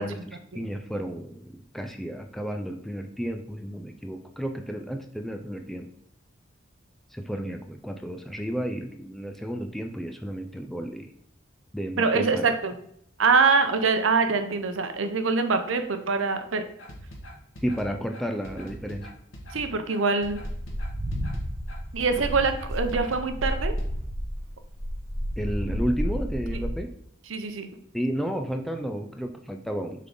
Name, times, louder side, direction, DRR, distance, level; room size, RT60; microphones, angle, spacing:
voice 1, 0.0-5.9 7.1-11.1 11.7-12.5 17.6-19.1 25.4-26.9 27.9-30.1, equal, ahead, 4 dB, 0.4 m, -32 dB
voice 2, 12.0-12.8 13.2-16.6 19.5-20.4 21.9-23.7 26.5-26.6 27.3-27.8, right 4 dB, 75° right, 8 dB, 0.7 m, -24 dB
sound 1, 16.8-23.9, equal, 75° left, 1.5 m, -42 dB
sound 2, 20.3-26.7, equal, 15° right, 1.9 m, -31 dB
6.8 x 3.8 x 3.7 m, 0.70 s
head